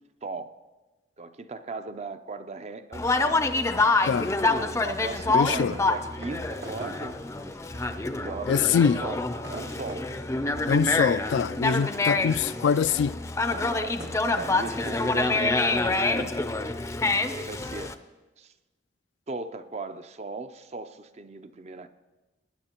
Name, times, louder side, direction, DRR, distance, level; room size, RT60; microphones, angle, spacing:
voice 1, 0.2-0.6 1.2-3.4 4.8-9.2 9.5-10.1 11.7-11.9 14.3-16.4 17.3-18.0 18.4-18.5 19.3-21.9, right 3 dB, 40° right, 0.5 m, -38 dB
Conversation, 2.9-17.9, left 3 dB, 15° left, 0.4 m, -27 dB
voice 2, 5.3-5.7 8.5-9.0 10.7-13.2, left 7 dB, 80° left, 0.3 m, -24 dB
sound 1, 6.2-14.2, right 1 dB, 75° right, 1.8 m, -48 dB
18.5 x 9.6 x 2.9 m
head